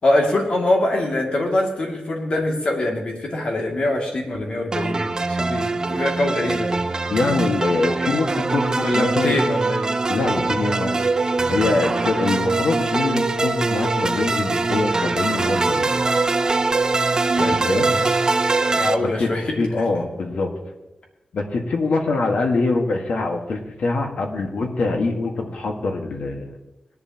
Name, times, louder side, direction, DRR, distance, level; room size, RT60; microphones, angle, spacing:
voice 1, 0.0-6.8 8.8-10.0 17.4-17.6 17.9-18.1 18.8-19.5, left 1 dB, 50° left, 0 dB, 2.5 m, -23 dB
sound 1, 4.7-19.0, right 3 dB, 30° right, 0.6 m, -22 dB
voice 2, 7.1-9.4 10.1-11.0 11.5-15.9 17.4-17.8 19.0-19.3 19.6-20.5 21.3-26.5, left 3 dB, 70° left, 3 dB, 1.7 m, -24 dB
19.5 x 11.0 x 3.0 m, 1.0 s
wide cardioid pair, 165°, 2 cm